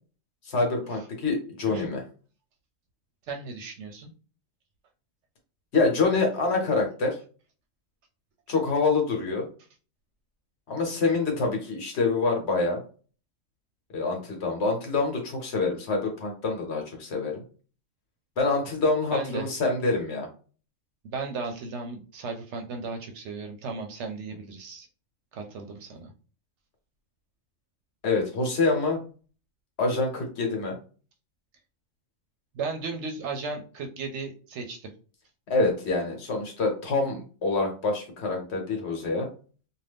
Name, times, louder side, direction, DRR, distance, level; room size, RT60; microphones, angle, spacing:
voice 1, 0.4-2.0 5.7-7.2 8.5-9.5 10.7-12.8 13.9-17.4 18.4-20.3 28.0-29.0 29.8-30.8 35.5-39.3, left 3 dB, 60° left, 1 dB, 1.0 m, -26 dB
voice 2, 3.3-4.1 19.1-19.5 21.0-24.9 25.3-26.1 32.5-34.9, right 4 dB, 65° right, 4 dB, 0.8 m, -35 dB
2.5 x 2.3 x 3.4 m, 0.37 s
omnidirectional pair, 1.4 m